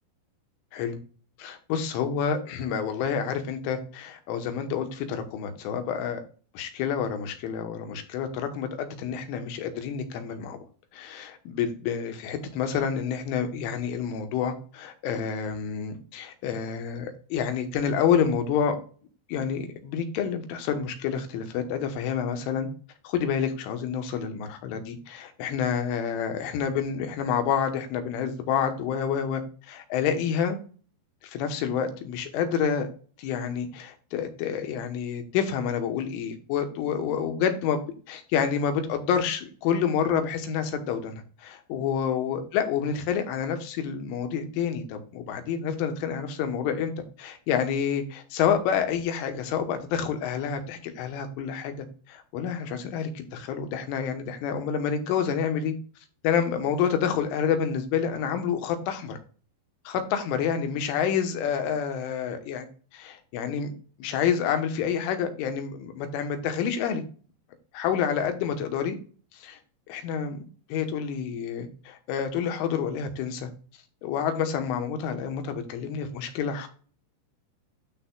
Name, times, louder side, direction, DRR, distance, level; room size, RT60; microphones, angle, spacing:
voice 1, 1.4-6.2 6.6-10.7 10.9-18.8 19.3-22.7 23.1-30.6 31.2-32.9 33.2-37.8 38.1-46.9 47.2-55.8 56.2-59.2 59.9-62.7 62.9-63.7 64.0-67.0 67.7-69.0 69.3-69.6 69.9-70.4 70.7-73.5 74.0-76.7, left 7 dB, 85° left, 7 dB, 3.6 m, -28 dB
13.0 x 4.4 x 2.3 m, 0.38 s
omnidirectional pair, 5.4 m